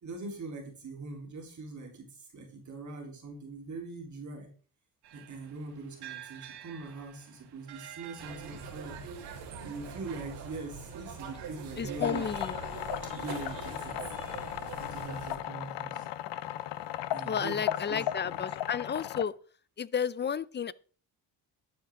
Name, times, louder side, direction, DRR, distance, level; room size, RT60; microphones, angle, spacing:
voice 1, 0.0-4.5 5.1-9.0 9.6-12.3 13.0-14.0 14.7-16.1 17.1-18.4, right 3 dB, 45° right, 3.8 m, -42 dB
sound 1, 5.0-10.2, right 11 dB, 70° right, 2.3 m, -50 dB
sound 2, 8.2-15.4, right 5 dB, 85° right, 4.0 m, -43 dB
voice 2, 11.8-12.5 17.3-19.3 19.8-20.7, left 7 dB, 25° left, 0.5 m, -32 dB
sound 3, 12.0-19.2, left 12 dB, 85° left, 1.0 m, -36 dB
12.5 x 12.0 x 3.8 m
cardioid pair, 125°, 41 cm